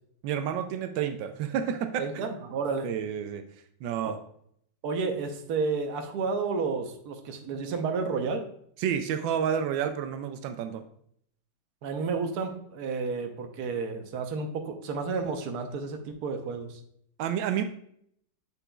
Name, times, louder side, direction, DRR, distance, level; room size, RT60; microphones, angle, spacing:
voice 1, 0.2-2.2 2.8-3.4 3.8-4.2 8.8-10.8 17.2-17.6, right 8 dB, 85° right, 8 dB, 1.3 m, -30 dB
voice 2, 2.0-2.9 4.0-4.1 4.8-8.4 11.8-16.8, right 4 dB, 60° right, 5 dB, 1.3 m, -31 dB
7.4 x 6.8 x 2.3 m, 0.67 s
omnidirectional pair, 2.0 m